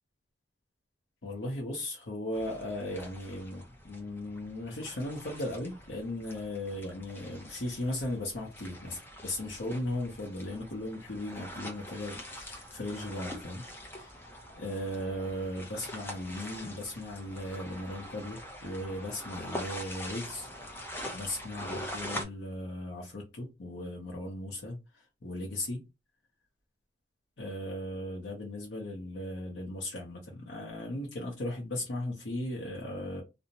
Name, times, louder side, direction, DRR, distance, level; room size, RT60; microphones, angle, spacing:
voice 1, 1.2-14.2 14.6-20.5 21.1-25.8 27.4-33.2, left 1 dB, 75° left, 0.7 m, -37 dB
sound 1, 2.3-22.2, equal, 15° left, 0.5 m, -44 dB
2.6 x 2.1 x 2.7 m
head